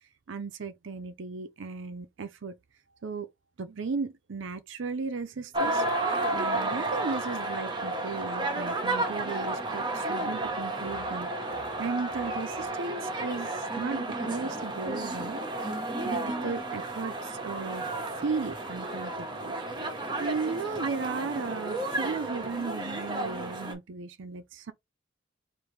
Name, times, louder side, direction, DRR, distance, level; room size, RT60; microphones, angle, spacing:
voice 1, 0.3-2.6 3.0-3.3 3.6-5.8 6.3-11.3 11.8-15.4 16.1-19.9 20.2-24.7, right 4 dB, 65° right, 0.5 m, -36 dB
sound 1, 5.5-23.7, right 2 dB, 20° right, 0.8 m, -32 dB
5.0 x 2.5 x 3.2 m
head